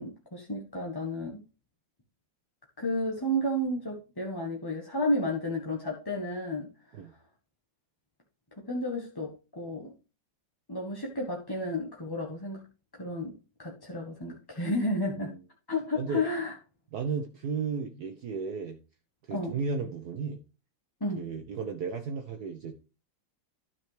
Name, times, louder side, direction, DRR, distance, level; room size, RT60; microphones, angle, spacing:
voice 1, 0.0-1.4 2.8-6.7 8.7-9.9 10.7-12.6 12.9-13.3 13.6-15.3 15.7-16.5 19.3-19.5 21.0-21.2, left 1 dB, 15° left, -1 dB, 1.0 m, -32 dB
voice 2, 16.9-18.8 19.3-20.4 21.2-22.8, right 5 dB, 60° right, 5 dB, 1.3 m, -34 dB
12.0 x 5.8 x 3.2 m, 0.32 s
omnidirectional pair, 2.1 m